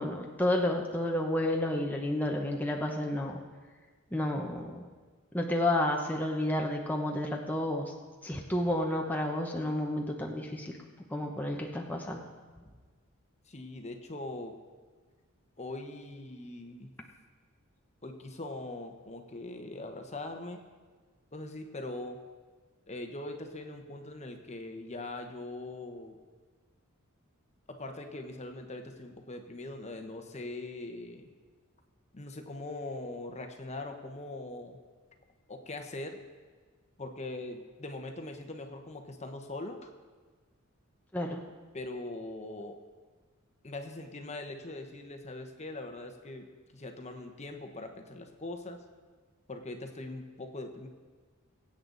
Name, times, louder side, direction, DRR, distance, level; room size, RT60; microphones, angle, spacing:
voice 1, 0.0-3.4 4.1-4.8 5.3-7.9 8.2-10.8 11.1-12.3 41.1-41.4, left 1 dB, 10° left, 0 dB, 1.0 m, -31 dB
voice 2, 13.5-14.5 15.6-16.9 18.0-20.6 21.3-22.2 22.9-26.2 27.7-31.3 32.1-34.8 35.5-36.2 37.0-39.9 41.7-42.8 43.6-46.5 46.7-48.8 49.5-50.9, left 2 dB, 30° left, 5 dB, 1.1 m, -41 dB
22.5 x 8.8 x 4.0 m, 1.4 s
head